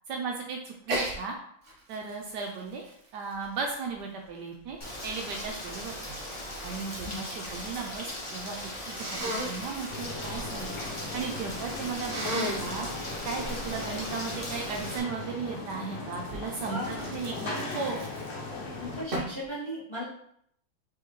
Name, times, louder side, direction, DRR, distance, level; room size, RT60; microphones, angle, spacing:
voice 1, 0.1-1.3 1.9-2.9 3.1-6.1 6.6-8.6 8.9-10.8 11.1-12.9 13.2-18.0, right 5 dB, 70° right, 1 dB, 1.0 m, -36 dB
Sneeze, 0.8-1.2 1.6-4.0 4.7-7.1 7.4-8.0 8.9-9.5 12.0-12.7 16.2-18.5 19.1-19.4, right 1 dB, 50° right, 1.1 m, -36 dB
Rain, 4.8-15.0, left 1 dB, 45° left, 0.4 m, -38 dB
sound 1, 9.9-19.0, left 3 dB, 75° left, 1.5 m, -38 dB
voice 2, 16.7-17.1 17.4-17.7 18.7-20.0, equal, 20° left, -8 dB, 1.0 m, -37 dB
4.6 x 3.4 x 3.0 m, 0.69 s
omnidirectional pair, 2.1 m